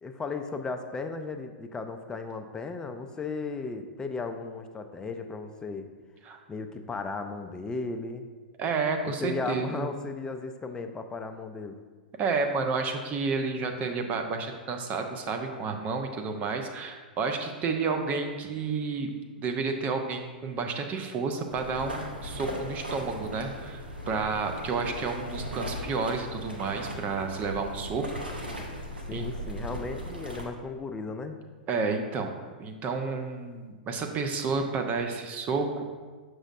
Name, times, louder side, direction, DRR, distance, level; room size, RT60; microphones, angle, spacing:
voice 1, 0.0-5.9 6.5-8.3 9.0-11.8 29.1-31.4, left 4 dB, 15° left, 7 dB, 0.4 m, -35 dB
voice 2, 8.6-9.9 12.2-19.1 19.4-28.1 29.1-29.2 31.7-35.8, right 4 dB, 30° right, 5 dB, 0.7 m, -31 dB
sound 1, 21.5-30.5, equal, 90° right, 0.9 m, -38 dB
6.3 x 6.2 x 2.5 m, 1.4 s
hypercardioid pair, 105°, 5 cm